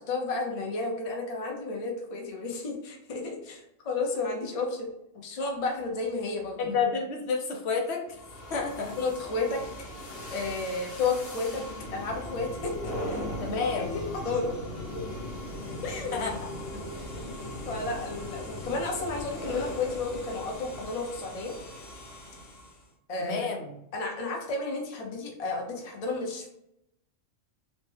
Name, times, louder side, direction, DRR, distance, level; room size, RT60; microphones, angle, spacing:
voice 1, 0.0-4.9 5.2-6.7 9.0-9.7 10.3-11.6 11.9-13.2 13.8-14.6 14.9-15.0 15.8-16.1 17.7-21.5 23.1-23.5 23.9-26.5, left 3 dB, 45° left, 0 dB, 0.5 m, -32 dB
voice 2, 6.6-8.2 8.5-9.0 13.4-14.0 16.1-16.4 16.7-16.8 23.2-23.8, left 5 dB, 65° left, 1 dB, 0.8 m, -30 dB
sound 1, 8.1-22.9, left 1 dB, 80° left, 1.2 m, -38 dB
3.1 x 2.1 x 3.2 m, 0.81 s
omnidirectional pair, 1.3 m